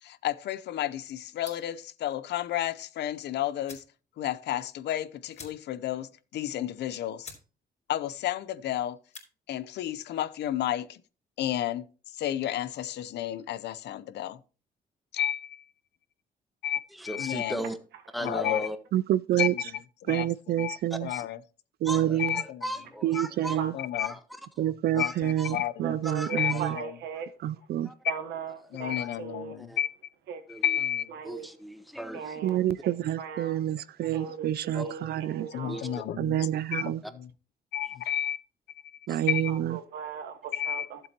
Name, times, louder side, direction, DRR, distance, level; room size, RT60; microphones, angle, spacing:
voice 1, 0.0-3.8 4.2-7.3 7.9-9.0 9.5-11.0 11.4-11.9 12.2-14.4 15.1-15.6 16.6-17.7 18.2-18.7 19.4-21.4 22.2-22.6 23.7-24.1 24.9-25.9 26.3-27.0 28.7-29.9 30.5-31.1 35.5-36.8 37.1-37.3 37.7-38.4 38.8-39.0 39.3-39.5 40.5-40.9, left 11 dB, 80° left, 0.7 m, -32 dB
sound 1, 1.4-1.8 3.1-3.2 3.6-4.0 4.3-4.4 4.7-4.8 5.3-5.9 6.3-6.4 6.8-6.9 7.2-7.5 7.8-8.2 8.9-9.3, left 4 dB, 40° left, 3.5 m, -48 dB
voice 2, 16.9-17.8 18.1-18.8 20.9-21.3 21.8-23.6 24.0-24.2 24.6-25.5 26.0-26.7 27.8-27.9 29.0-29.1 29.6-29.8 30.5-30.8 31.2-32.4 34.7-34.9 35.6-36.0 37.0-37.1 39.1-39.2, equal, ahead, 1.3 m, -37 dB
voice 3, 18.9-19.5 20.1-21.1 21.8-22.4 23.0-23.7 24.6-26.8 27.4-27.9 32.4-35.5 36.2-37.0 39.1-39.8, right 12 dB, 65° right, 0.4 m, -28 dB
voice 4, 25.8-27.3 28.1-29.5 30.3-30.4 31.1-31.5 32.1-32.9 33.2-33.6 34.1-36.0 39.2-41.0, right 7 dB, 85° right, 1.3 m, -38 dB
12.0 x 7.6 x 2.9 m
cardioid pair, 80°, 17 cm